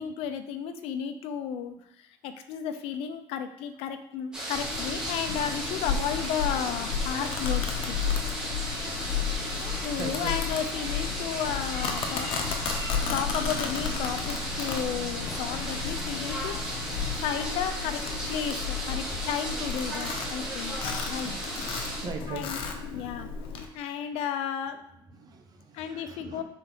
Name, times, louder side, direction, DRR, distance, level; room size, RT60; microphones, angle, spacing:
voice 1, 0.0-8.0 9.8-12.3 13.1-16.6 16.8-20.8 21.0-21.4 22.3-23.3 23.7-24.8 25.7-26.4, left 8 dB, 75° left, 8 dB, 0.7 m, -33 dB
sound 1, 4.3-22.1, right 1 dB, 10° right, 2.3 m, -35 dB
Domestic sounds home sounds, 4.6-23.7, left 6 dB, 60° left, 1.1 m, -33 dB
voice 2, 9.6-10.3 19.0-19.3 21.8-22.4 22.9-23.1 23.4-24.1 25.1-26.4, right 4 dB, 40° right, 3 dB, 1.1 m, -42 dB
6.4 x 4.2 x 4.0 m, 0.77 s
cardioid pair, 120°, 10 cm